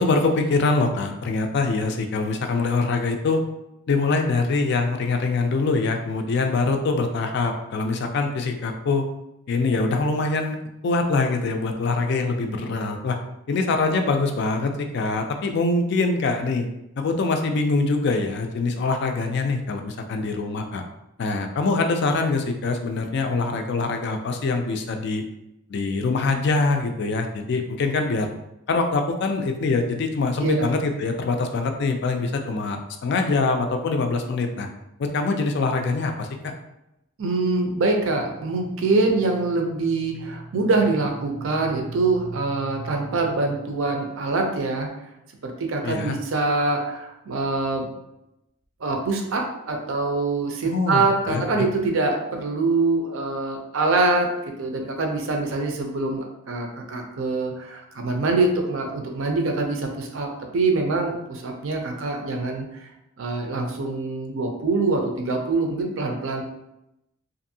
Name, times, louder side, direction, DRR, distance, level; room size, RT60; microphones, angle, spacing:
voice 1, 0.0-3.4 3.9-9.1 9.5-10.6 10.8-13.2 13.5-16.7 17.0-20.8 21.2-25.2 25.7-28.3 28.7-34.7 35.0-36.5 45.8-46.2 50.6-51.7, left 3 dB, 55° left, 5 dB, 0.3 m, -24 dB
voice 2, 37.2-44.9 45.4-47.9 48.8-54.3 54.6-60.3 60.5-62.7 63.2-66.4, right 3 dB, 70° right, 2 dB, 0.5 m, -24 dB
2.6 x 2.6 x 2.6 m, 0.88 s
head